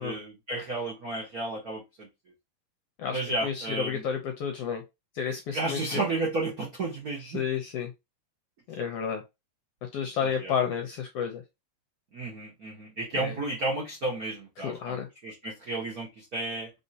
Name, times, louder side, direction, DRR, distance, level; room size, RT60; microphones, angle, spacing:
voice 1, 0.0-2.1 3.1-4.0 5.5-7.4 10.2-10.5 12.1-16.7, right 2 dB, 80° right, -2 dB, 0.8 m, -32 dB
voice 2, 3.0-4.8 5.1-6.0 7.2-7.9 8.8-9.2 9.8-11.4 13.1-13.3 14.6-15.1, left 7 dB, 75° left, 4 dB, 1.4 m, -31 dB
4.2 x 3.5 x 2.7 m, 0.23 s
omnidirectional pair, 3.5 m